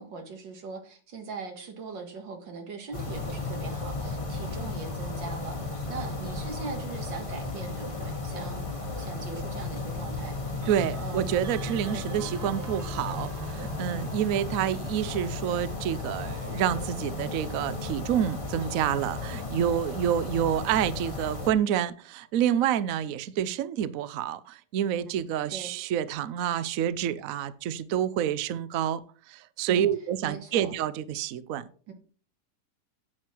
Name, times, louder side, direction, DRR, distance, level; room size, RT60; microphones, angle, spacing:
voice 1, 0.0-8.7 9.0-10.6 11.0-11.4 11.9-12.1 13.8-14.1 24.9-25.2 25.5-25.7 29.7-29.9 30.2-30.8 31.9-32.0, right 4 dB, 85° right, 2.5 m, -40 dB
sound 1, 2.9-21.5, left 3 dB, 20° left, 1.2 m, -34 dB
sound 2, 9.0-9.2 10.5-21.4, right 6 dB, 50° right, 1.2 m, -50 dB
voice 2, 10.7-29.0 29.3-31.7, right 10 dB, 65° right, 0.9 m, -28 dB
sound 3, 15.0-20.5, left 4 dB, 55° left, 0.6 m, -49 dB
9.1 x 7.7 x 4.4 m
omnidirectional pair, 1.9 m